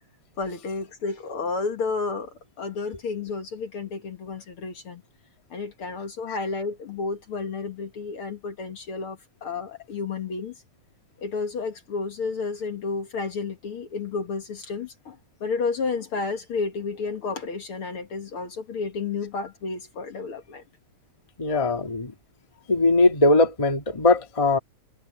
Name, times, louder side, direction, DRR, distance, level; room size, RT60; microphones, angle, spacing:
voice 1, 0.4-5.0 5.5-10.6 11.2-20.6, left 4 dB, 50° left, 2.3 m, -31 dB
voice 2, 21.4-22.1 22.7-24.6, left 2 dB, 15° left, 1.6 m, -20 dB
omnidirectional pair, 3.4 m